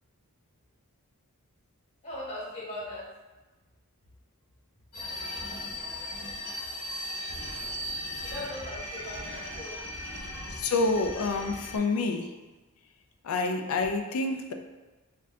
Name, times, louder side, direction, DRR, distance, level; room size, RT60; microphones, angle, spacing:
voice 1, 2.0-3.1 8.2-9.8, left 1 dB, 30° left, -7 dB, 1.2 m, -39 dB
sound 1, 4.9-11.8, left 1 dB, 85° left, 1.0 m, -37 dB
voice 2, 10.5-12.4 13.2-14.5, left 3 dB, 70° left, 5 dB, 0.4 m, -28 dB
4.0 x 2.7 x 2.6 m, 1.2 s
head